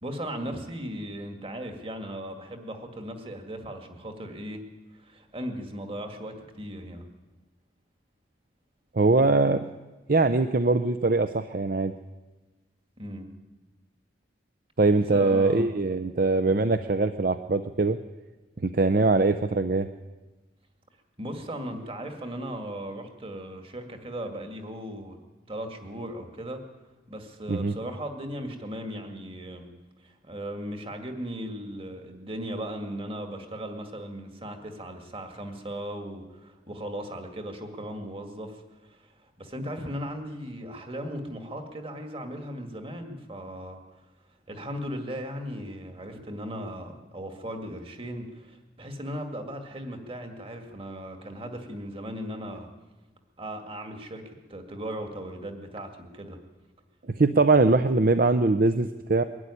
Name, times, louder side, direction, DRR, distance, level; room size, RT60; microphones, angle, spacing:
voice 1, 0.0-4.6 4.9-7.1 13.0-13.3 15.1-15.7 21.2-25.2 25.5-26.6 27.1-29.7 30.0-43.8 44.5-52.7 53.4-56.4 57.5-57.6, equal, 30° right, 4 dB, 2.1 m, -37 dB
voice 2, 8.9-9.6 10.1-11.9 14.8-18.0 18.6-19.9 27.5-27.7 57.2-59.2, right 3 dB, 50° right, 9 dB, 0.7 m, -22 dB
22.0 x 12.5 x 9.8 m, 1.2 s
head